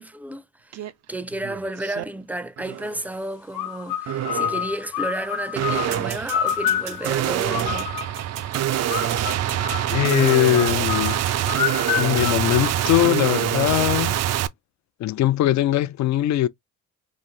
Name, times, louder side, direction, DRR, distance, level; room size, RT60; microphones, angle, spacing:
voice 1, 0.0-7.9, right 1 dB, 5° right, 0.5 m, -32 dB
sound 1, 0.7-0.9 1.3-2.0 2.6-3.0 4.1-4.7 5.5-14.5, right 11 dB, 60° right, 0.5 m, -25 dB
sound 2, 3.5-8.2 8.9-13.3, left 10 dB, 90° left, 0.9 m, -29 dB
sound 3, 5.9-11.6, right 9 dB, 90° right, 0.9 m, -39 dB
voice 2, 9.9-11.2 12.0-14.2 15.0-16.5, left 14 dB, 65° left, 0.5 m, -21 dB
4.0 x 2.5 x 3.1 m
cardioid pair, 90°, 30 cm